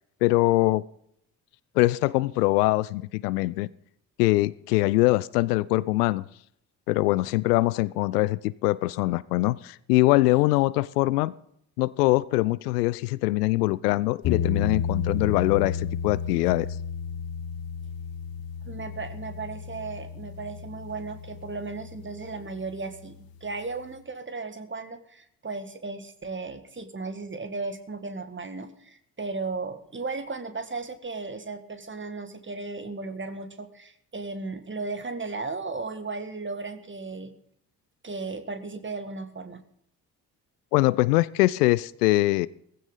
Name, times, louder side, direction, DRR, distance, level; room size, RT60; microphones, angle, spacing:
voice 1, 0.2-0.8 1.8-3.7 4.2-6.3 6.9-11.3 11.8-16.7 40.7-42.5, left 20 dB, 70° left, 21 dB, 0.6 m, -23 dB
sound 1, 14.2-23.2, left 7 dB, 45° left, 1.1 m, -32 dB
voice 2, 18.6-37.3 38.0-39.6, right 3 dB, 25° right, 9 dB, 2.0 m, -35 dB
18.5 x 15.0 x 4.0 m, 0.70 s
figure-of-eight pair, 40°, 49 cm